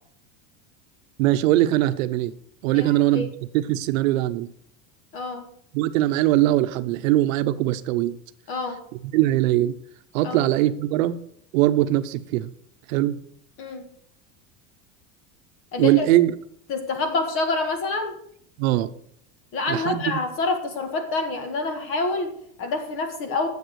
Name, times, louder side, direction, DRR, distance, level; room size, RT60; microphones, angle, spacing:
voice 1, 1.2-2.3 2.6-3.3 3.5-4.5 5.7-8.2 9.0-9.8 10.1-11.2 11.5-12.5 12.9-13.2 15.8-16.3 18.6-18.9 19.7-20.2, right 15 dB, 90° right, 0.8 m, -21 dB
voice 2, 2.7-3.3 5.1-5.4 8.5-8.8 10.2-10.5 13.6-13.8 15.7-16.1 16.7-18.2 19.5-23.5, left 3 dB, 35° left, 1.7 m, -27 dB
10.5 x 7.4 x 6.3 m
cardioid pair, 175°, 39 cm